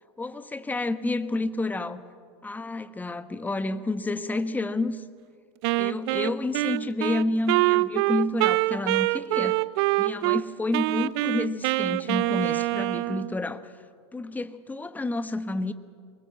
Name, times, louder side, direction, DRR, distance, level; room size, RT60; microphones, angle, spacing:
voice 1, 0.2-2.0 2.4-5.0 5.8-9.6 10.0-13.7 14.1-15.7, left 2 dB, 10° left, 12 dB, 1.1 m, -29 dB
Wind instrument woodwind instrument, 5.6-10.4 10.7-13.3, right 21 dB, 55° right, 0.5 m, -25 dB
23.0 x 20.0 x 7.9 m, 2.2 s
hypercardioid pair, 85°, 15 cm